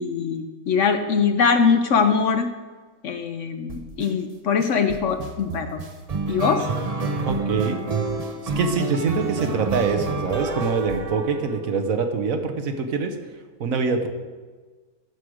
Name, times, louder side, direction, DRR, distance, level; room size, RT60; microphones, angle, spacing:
voice 1, 0.0-2.5 3.0-5.8 6.3-6.7, left 5 dB, 60° left, 8 dB, 0.9 m, -22 dB
sound 1, 3.7-4.1 4.6-11.8, right 3 dB, 35° right, 0.6 m, -29 dB
voice 2, 7.2-7.8 8.6-13.1 13.6-14.1, right 5 dB, 65° right, 6 dB, 1.3 m, -24 dB
14.5 x 5.0 x 6.3 m, 1.4 s
omnidirectional pair, 1.6 m